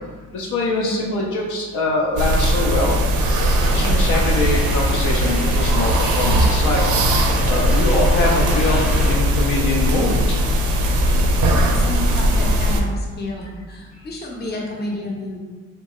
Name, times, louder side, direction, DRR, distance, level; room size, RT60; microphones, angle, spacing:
voice 1, 0.3-2.9 3.8-6.8 7.4-10.1, left 2 dB, 75° left, -2 dB, 0.6 m, -23 dB
sound 1, 2.2-12.8, equal, 80° right, 0.5 m, -18 dB
sound 2, 3.6-9.2, right 1 dB, 5° right, 0.6 m, -30 dB
voice 2, 11.1-15.4, left 1 dB, 35° left, -2 dB, 0.7 m, -30 dB
2.8 x 2.3 x 2.9 m, 1.4 s
cardioid pair, 90°, 30 cm